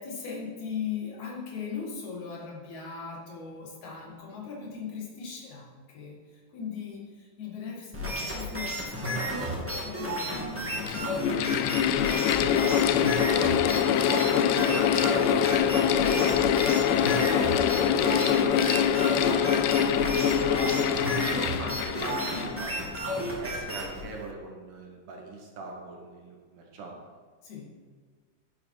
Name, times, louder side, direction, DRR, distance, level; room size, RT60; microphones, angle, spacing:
voice 1, 0.0-11.6 27.4-27.7, left 6 dB, 65° left, -2 dB, 3.0 m, -39 dB
sound 1, 7.9-24.0, right 1 dB, 5° right, 1.7 m, -32 dB
Mechanical fan, 9.5-9.6 10.5-23.2, left 9 dB, 90° left, 2.1 m, -24 dB
voice 2, 12.9-13.3 13.6-16.4 16.8-21.2 21.6-22.8 23.4-27.0, right 3 dB, 80° right, 0 dB, 3.2 m, -40 dB
10.0 x 7.3 x 4.6 m, 1.5 s
omnidirectional pair, 3.6 m